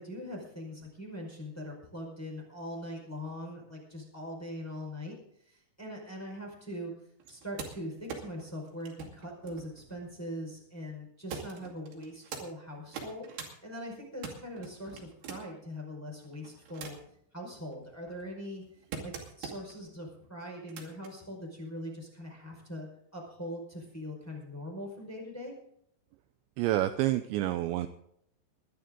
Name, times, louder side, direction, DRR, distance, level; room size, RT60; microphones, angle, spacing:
voice 1, 0.0-5.2 5.5-6.9 7.3-13.3 13.6-17.0 17.3-18.6 19.0-22.9 23.1-25.5, equal, 5° left, -1 dB, 4.3 m, -41 dB
sound 1, 7.2-10.5 11.3-12.5 12.8-13.5 13.9-15.6 16.2-17.2 17.7-19.8 20.5-21.1 22.2-22.3, right 6 dB, 60° right, 4.3 m, -44 dB
voice 2, 26.6-27.9, right 15 dB, 80° right, 10 dB, 2.7 m, -28 dB
21.5 x 11.5 x 3.8 m, 0.71 s
omnidirectional pair, 5.7 m